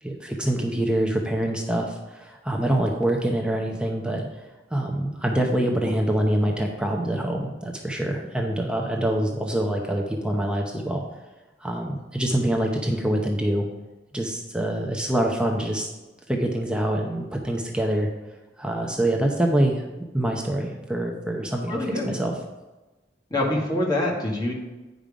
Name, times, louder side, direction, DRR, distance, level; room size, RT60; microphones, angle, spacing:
voice 1, 0.0-4.3 4.7-11.0 11.6-13.7 14.1-15.9 16.3-18.1 18.6-19.8 20.1-21.8 22.0-22.3, right 1 dB, 5° right, 1 dB, 0.7 m, -25 dB
voice 2, 21.7-22.1 23.3-24.5, left 1 dB, 25° left, -3 dB, 1.8 m, -25 dB
9.1 x 5.3 x 5.0 m, 1.1 s
head